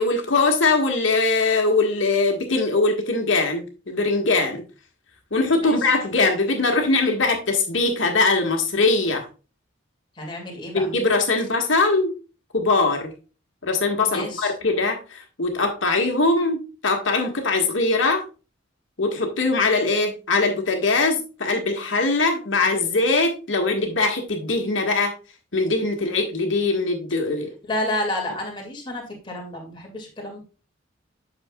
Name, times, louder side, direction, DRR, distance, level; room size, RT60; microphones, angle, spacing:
voice 1, 0.0-4.6 5.3-9.3 10.7-12.1 12.5-13.1 13.6-18.2 19.0-25.1 25.5-27.5, left 3 dB, 70° left, 1.7 m, -21 dB
voice 2, 5.6-5.9 10.2-10.9 14.1-14.5 27.7-30.4, left 1 dB, 25° left, 2.3 m, -30 dB
8.7 x 6.8 x 2.3 m
head